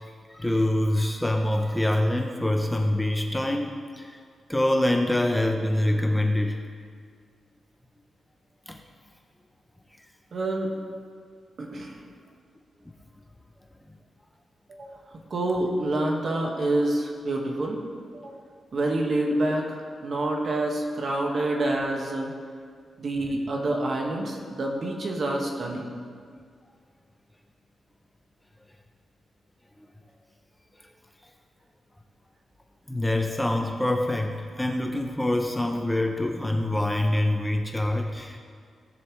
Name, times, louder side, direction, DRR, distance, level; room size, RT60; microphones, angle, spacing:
voice 1, 0.3-4.2 4.5-6.6 8.7-8.8 32.9-38.4, left 1 dB, 5° left, 2 dB, 0.7 m, -25 dB
voice 2, 10.3-10.7 11.6-11.9 14.8-15.0 15.3-17.8 18.2-18.3 18.7-22.3 23.0-25.9, right 1 dB, 50° right, 0 dB, 1.7 m, -27 dB
19.0 x 7.1 x 3.2 m, 2.1 s
wide cardioid pair, 120°, 0 cm